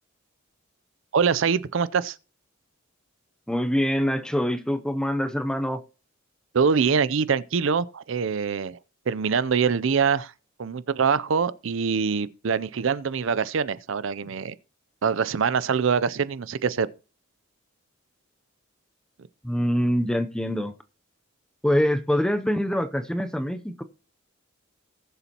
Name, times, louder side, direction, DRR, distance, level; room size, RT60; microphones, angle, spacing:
voice 1, 1.1-2.2 6.5-8.8 9.1-10.3 10.6-14.5 15.0-16.9, right 6 dB, 65° right, 0.5 m, -24 dB
voice 2, 3.5-5.8 19.4-20.7 21.6-23.8, equal, 5° left, 0.5 m, -24 dB
19.5 x 7.0 x 2.9 m
head